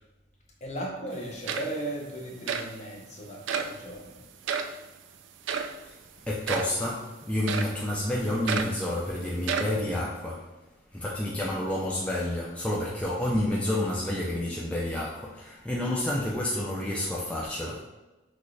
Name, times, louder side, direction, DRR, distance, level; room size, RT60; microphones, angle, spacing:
voice 1, 0.6-4.3 6.2-6.3, right 1 dB, 35° left, 0 dB, 0.7 m, -37 dB
sound 1, 1.1-1.2 1.5-2.0 2.5-2.7 3.5-3.8 4.4-4.8 5.5-5.8 6.5-6.8 7.5-7.8 8.5-8.8 9.4-9.8, right 6 dB, 75° right, 0.4 m, -31 dB
voice 2, 6.3-10.6 10.9-17.8, left 1 dB, 5° left, -5 dB, 0.4 m, -29 dB
6.0 x 2.4 x 3.3 m, 1.1 s
head